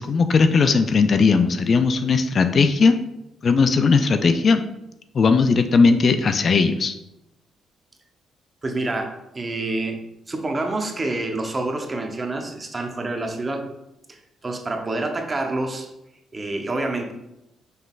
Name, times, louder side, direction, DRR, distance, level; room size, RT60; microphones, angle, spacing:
voice 1, 0.0-3.0 3.4-4.6 5.1-7.0, left 4 dB, 45° left, 8 dB, 0.3 m, -18 dB
voice 2, 8.6-10.0 10.3-13.7 14.1-15.9 16.3-17.1, right 2 dB, 25° right, 3 dB, 0.7 m, -27 dB
5.4 x 3.8 x 2.4 m, 0.89 s
cardioid pair, 90°, 0 cm